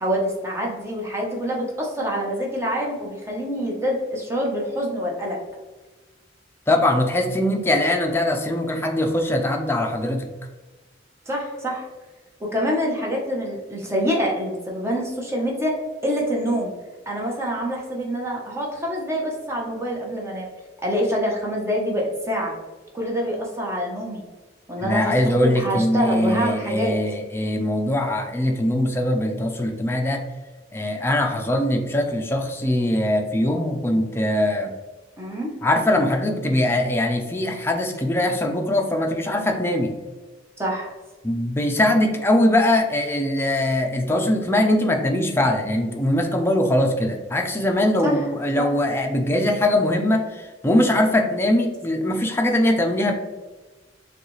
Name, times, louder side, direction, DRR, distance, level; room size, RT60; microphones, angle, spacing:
voice 1, 0.0-5.4 11.3-11.9 12.4-16.7 17.1-20.5 20.8-22.5 22.9-24.2 24.7-26.9 35.2-35.6 40.6-40.9 48.0-48.2 48.6-48.7, equal, 15° right, -2 dB, 0.9 m, -26 dB
voice 2, 6.7-10.3 24.8-30.2 30.7-34.7 35.6-39.9 41.2-53.1, left 1 dB, 15° left, 3 dB, 0.5 m, -21 dB
6.5 x 2.4 x 3.1 m, 1.2 s
head